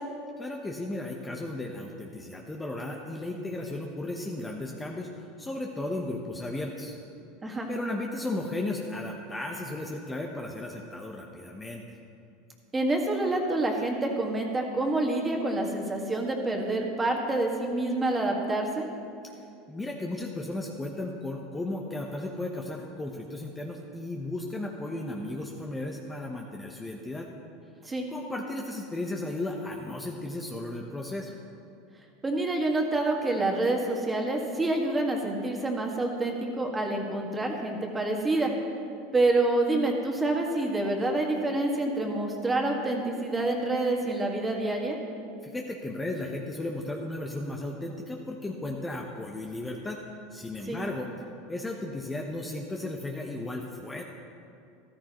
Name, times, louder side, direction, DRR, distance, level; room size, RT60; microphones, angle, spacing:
voice 1, 0.4-7.0 7.7-12.0 19.7-27.3 28.1-31.3 45.4-50.0 50.3-51.1 51.5-54.0, left 2 dB, 15° left, 0 dB, 1.0 m, -35 dB
voice 2, 12.7-18.9 27.8-28.1 32.2-38.5 39.1-45.0 50.7-50.8, right 2 dB, 15° right, 1 dB, 1.8 m, -27 dB
14.0 x 13.0 x 3.1 m, 2.6 s
hypercardioid pair, 100°, 0 cm